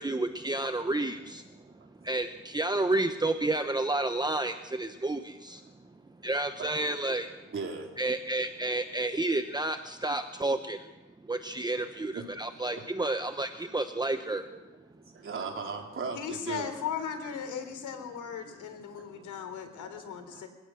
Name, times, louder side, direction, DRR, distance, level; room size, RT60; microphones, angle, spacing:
voice 1, 0.0-1.4 2.1-5.6 6.2-7.3 8.0-10.8 11.3-14.4, right 2 dB, 15° right, 8 dB, 1.1 m, -30 dB
voice 2, 1.6-1.9 4.9-5.1 5.6-5.7 6.6-6.7 7.5-8.0 11.7-11.8 12.1-12.2 12.7-12.8 14.5-16.7 20.3-20.4, right 4 dB, 45° right, 2 dB, 4.0 m, -38 dB
voice 3, 16.1-20.5, left 7 dB, 80° left, 8 dB, 3.6 m, -37 dB
26.0 x 17.0 x 6.4 m, 1.1 s
cardioid pair, 90°, 30 cm